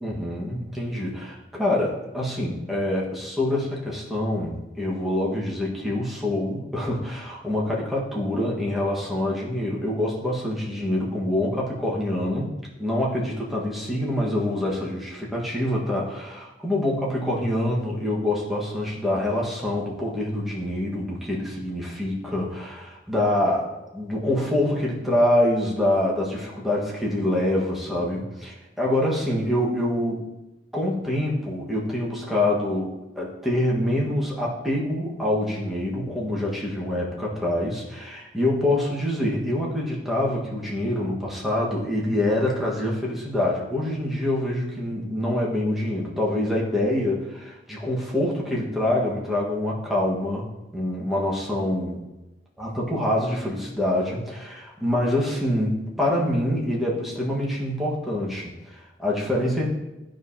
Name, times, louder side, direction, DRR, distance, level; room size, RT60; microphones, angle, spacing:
voice 1, 0.0-12.5 12.8-30.2 30.7-50.5 50.7-52.0 52.6-59.7, left 1 dB, ahead, -5 dB, 1.5 m, -25 dB
12.0 x 4.8 x 2.8 m, 1.0 s
head